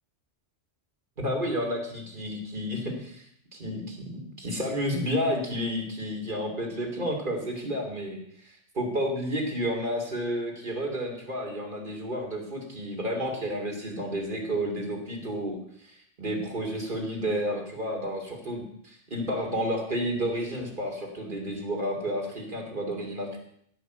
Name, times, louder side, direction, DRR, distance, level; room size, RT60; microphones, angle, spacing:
voice 1, 1.2-3.3 3.5-15.6 15.8-23.4, equal, 45° right, 1 dB, 3.1 m, -31 dB
16.0 x 5.9 x 8.0 m, 0.69 s
omnidirectional pair, 1.2 m